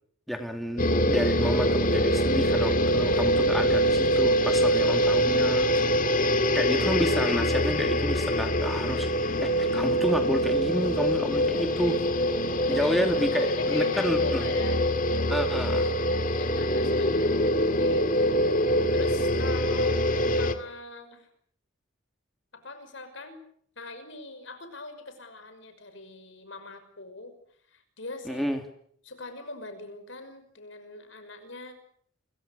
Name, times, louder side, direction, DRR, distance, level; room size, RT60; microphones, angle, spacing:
voice 1, 0.3-6.0 6.5-9.1 9.4-11.9 12.7-14.5 15.3-15.9 28.3-28.6, equal, ahead, 4 dB, 2.5 m, -30 dB
sound 1, 0.8-20.5, equal, 40° left, 2.0 m, -24 dB
voice 2, 9.3-9.6 11.3-12.0 12.6-13.0 13.3-14.8 16.3-18.4 18.9-21.3 22.5-23.4 23.8-27.3 27.7-28.5 29.0-31.8, left 2 dB, 65° left, 9 dB, 5.9 m, -41 dB
29.5 x 23.5 x 6.7 m, 0.63 s
head